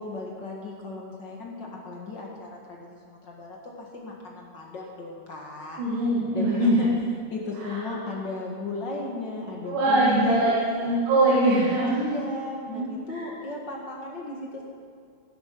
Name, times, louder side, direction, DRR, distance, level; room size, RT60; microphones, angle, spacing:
voice 1, 0.0-6.0 6.3-6.9 7.3-11.0 11.9-14.6, left 2 dB, 40° left, -2 dB, 1.9 m, -35 dB
voice 2, 5.8-6.9 7.7-7.8 9.6-11.9 12.7-13.2, right 1 dB, 85° right, -7 dB, 3.8 m, -22 dB
16.0 x 8.0 x 6.1 m, 2.3 s
omnidirectional pair, 3.7 m